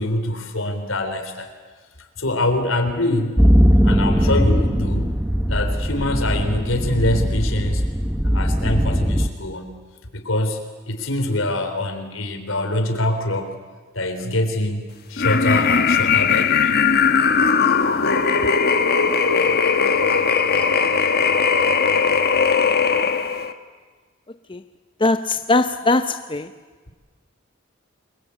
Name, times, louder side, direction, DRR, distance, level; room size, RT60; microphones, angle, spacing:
voice 1, 0.0-1.5 2.2-3.5 3.8-5.1 5.5-7.8 8.3-9.8 10.1-13.6 13.9-16.8, left 1 dB, 75° left, 6 dB, 3.8 m, -24 dB
sound 1, 3.4-9.3, equal, 5° right, 1.2 m, -19 dB
sound 2, 15.2-23.5, left 5 dB, 50° left, 1.4 m, -18 dB
voice 2, 25.0-26.5, left 2 dB, 25° left, 9 dB, 0.7 m, -20 dB
29.0 x 22.5 x 8.5 m, 1.4 s
head